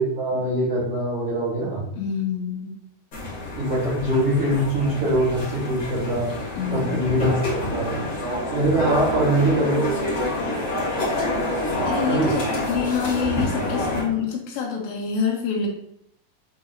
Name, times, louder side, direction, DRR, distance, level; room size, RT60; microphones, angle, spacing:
voice 1, 0.0-1.8 3.6-6.3 6.7-8.0 8.5-9.9 12.1-12.3, right 1 dB, 65° right, -9 dB, 1.4 m, -23 dB
voice 2, 2.0-2.7 6.6-7.0 11.9-15.7, left 6 dB, 80° left, -1 dB, 3.4 m, -26 dB
sound 1, 3.1-14.0, left 1 dB, 30° left, 2.6 m, -27 dB
9.3 x 4.1 x 2.7 m, 0.73 s
omnidirectional pair, 5.1 m